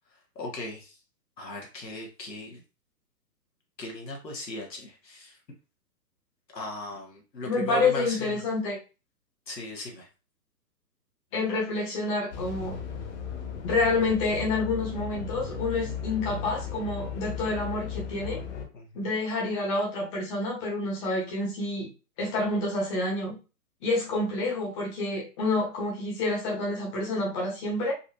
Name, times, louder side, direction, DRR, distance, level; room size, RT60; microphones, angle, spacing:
voice 1, 0.3-0.9 1.4-2.6 3.8-5.4 6.5-8.3 9.5-10.1 18.7-19.0, left 2 dB, 85° left, 0 dB, 1.2 m, -37 dB
voice 2, 7.5-8.8 11.3-12.8 13.6-18.4 18.9-21.9 22.2-23.3 23.8-27.9, left 2 dB, 20° left, -2 dB, 0.9 m, -28 dB
sound 1, 12.3-18.7, left 6 dB, 45° left, 1.0 m, -36 dB
4.0 x 2.6 x 2.7 m, 0.32 s
figure-of-eight pair, 135°, 49 cm